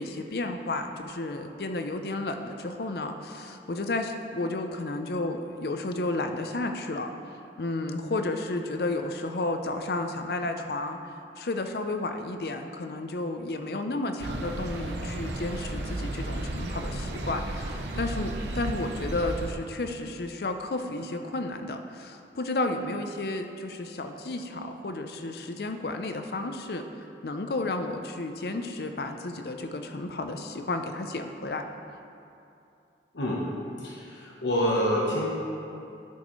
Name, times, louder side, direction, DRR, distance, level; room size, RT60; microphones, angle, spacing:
voice 1, 0.0-7.1 7.6-11.0 11.4-26.9 27.2-31.7, left 2 dB, 60° left, 6 dB, 0.5 m, -32 dB
sound 1, 14.2-19.5, right 1 dB, 85° right, 0.7 m, -33 dB
voice 2, 33.8-35.3, equal, 90° left, -3 dB, 1.0 m, -27 dB
12.0 x 6.4 x 3.1 m, 2.7 s
head